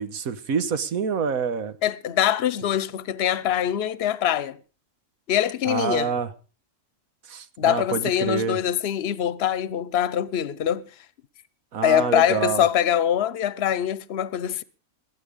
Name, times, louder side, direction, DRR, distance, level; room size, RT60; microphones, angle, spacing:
voice 1, 0.0-1.7 5.7-6.3 7.3-8.6 11.7-12.6, right 6 dB, 90° right, 1.6 m, -27 dB
voice 2, 1.8-4.6 5.3-6.1 7.6-10.9 11.8-14.6, left 10 dB, 55° left, 1.0 m, -23 dB
20.0 x 9.2 x 5.1 m
omnidirectional pair, 1.4 m